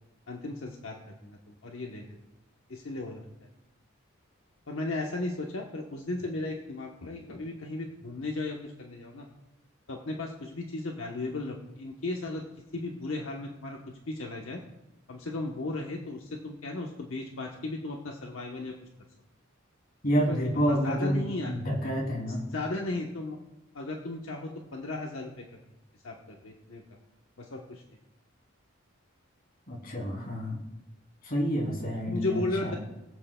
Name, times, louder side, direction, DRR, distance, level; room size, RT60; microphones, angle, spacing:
voice 1, 0.3-2.2 2.7-3.2 4.7-9.2 9.9-12.4 12.7-13.8 14.0-14.6 15.1-18.7 20.1-20.4 20.7-21.5 22.5-23.4 23.7-25.4 26.0-26.8 27.4-27.8 32.1-32.8, left 2 dB, 75° left, 0 dB, 1.0 m, -35 dB
voice 2, 20.0-22.5 29.7-30.6 31.2-32.8, equal, 45° left, -2 dB, 3.0 m, -29 dB
22.0 x 7.7 x 2.3 m, 0.96 s
head